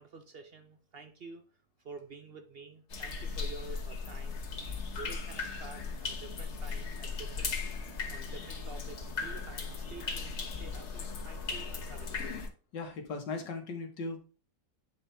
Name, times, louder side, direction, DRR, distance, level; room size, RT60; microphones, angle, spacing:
voice 1, 0.0-1.4 1.8-4.4 4.9-7.6 8.1-12.4, right 4 dB, 55° right, 7 dB, 0.6 m, -49 dB
sound 1, 2.9-12.5, left 4 dB, 45° left, 1.2 m, -37 dB
voice 2, 12.7-14.2, left 3 dB, 90° left, 5 dB, 2.0 m, -38 dB
8.4 x 4.3 x 3.4 m, 0.37 s
omnidirectional pair, 1.9 m